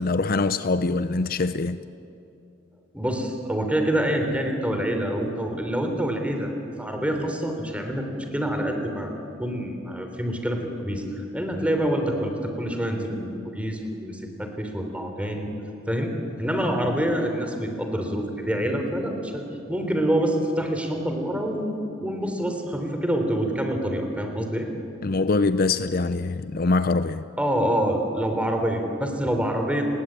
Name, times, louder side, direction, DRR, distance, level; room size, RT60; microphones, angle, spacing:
voice 1, 0.0-1.8 25.0-27.3, left 3 dB, 50° left, 0.6 m, -23 dB
voice 2, 2.9-6.5 6.8-15.5 15.9-24.7 27.4-29.8, right 1 dB, 5° right, 3.6 m, -26 dB
30.0 x 21.0 x 8.9 m
head